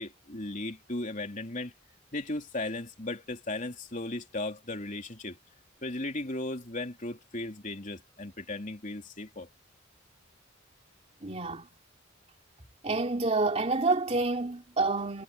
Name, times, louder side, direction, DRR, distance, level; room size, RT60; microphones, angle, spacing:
voice 1, 0.0-1.7 2.1-5.4 5.8-9.5, left 2 dB, 40° left, 3.4 m, -36 dB
voice 2, 11.2-11.7 12.8-15.2, right 3 dB, 30° right, 3.0 m, -28 dB
head